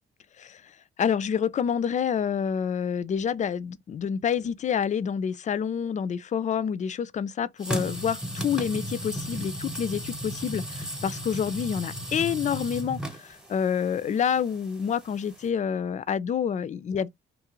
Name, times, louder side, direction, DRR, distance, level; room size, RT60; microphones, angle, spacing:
voice 1, 1.0-17.1, left 7 dB, 40° left, 0.4 m, -28 dB
sound 1, 7.6-15.5, equal, 5° right, 1.0 m, -35 dB
3.3 x 2.4 x 3.0 m
cardioid pair, 90°, 20 cm